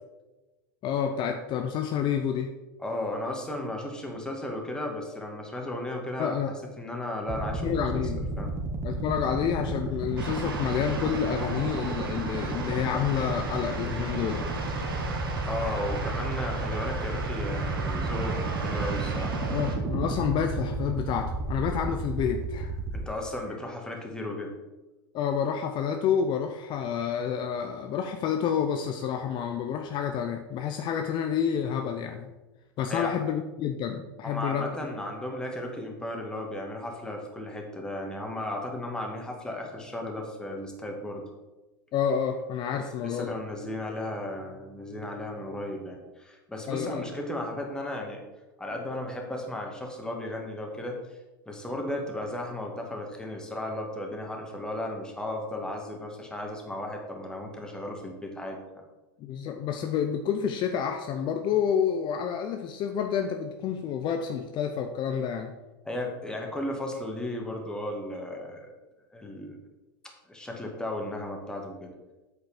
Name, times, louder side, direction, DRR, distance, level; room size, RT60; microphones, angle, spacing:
voice 1, 0.8-2.5 6.2-6.5 7.6-8.3 8.8-14.5 19.5-22.7 25.1-32.3 32.8-34.7 41.9-43.3 46.7-47.0 59.2-65.5, left 8 dB, 45° left, 5 dB, 0.6 m, -29 dB
voice 2, 2.8-8.6 15.4-19.4 22.9-24.5 32.9-33.2 34.2-41.3 42.7-48.2 48.6-51.2 51.5-58.8 65.9-68.7 69.1-69.6 70.3-71.9, left 1 dB, 5° left, 1 dB, 1.9 m, -35 dB
sound 1, 7.3-23.1, right 3 dB, 25° right, 1.2 m, -32 dB
sound 2, 10.2-19.8, right 3 dB, 85° right, 1.5 m, -36 dB
8.1 x 5.0 x 5.1 m, 1.1 s
hypercardioid pair, 90°, 12 cm